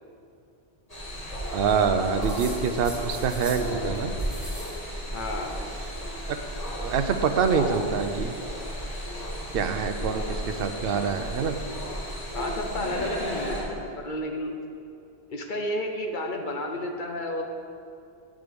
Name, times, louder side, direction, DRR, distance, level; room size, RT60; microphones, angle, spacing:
sound 1, 0.9-13.6, equal, 35° left, 2.2 m, -33 dB
voice 1, 1.5-4.1 6.3-6.4 6.8-8.3 9.5-11.6, right 6 dB, 60° right, 7 dB, 0.8 m, -25 dB
sound 2, 2.2-3.7 3.9-4.8 5.1-5.9 7.0-7.6, equal, ahead, 1.7 m, -43 dB
voice 2, 5.1-5.6 12.3-14.6 15.3-17.4, left 1 dB, 50° left, 3 dB, 0.9 m, -31 dB
8.4 x 7.4 x 5.2 m, 2.6 s
omnidirectional pair, 1.1 m